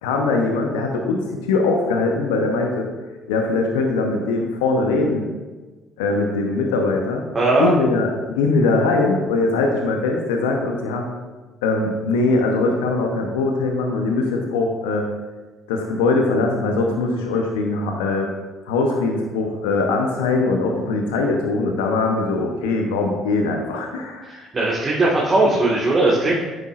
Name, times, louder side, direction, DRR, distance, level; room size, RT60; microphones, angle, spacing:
voice 1, 0.0-2.9 3.3-5.3 6.0-7.3 7.6-8.1 8.4-11.0 11.6-15.1 15.7-18.3 18.7-24.4, left 3 dB, 80° left, 2 dB, 0.8 m, -21 dB
voice 2, 7.3-7.7 24.2-26.4, right 2 dB, 35° right, -5 dB, 1.7 m, -19 dB
9.4 x 8.0 x 2.5 m, 1.3 s
hypercardioid pair, 55°, 0 cm